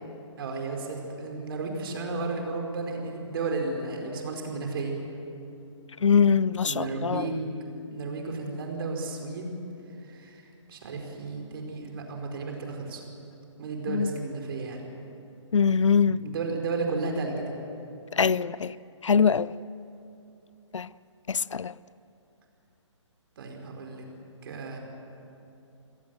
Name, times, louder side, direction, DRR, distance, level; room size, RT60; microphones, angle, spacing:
voice 1, 0.4-5.0 6.6-7.5 7.9-9.5 10.0-13.0 13.6-14.8 16.0-17.5 23.4-24.1 24.4-24.8, right 3 dB, 50° right, 4.7 m, -33 dB
voice 2, 6.0-7.3 13.9-14.1 15.5-16.2 18.1-18.8 19.0-19.5 20.7-20.9 21.3-21.7, left 6 dB, 75° left, 0.5 m, -23 dB
28.5 x 17.5 x 7.8 m
figure-of-eight pair, 135°, 16 cm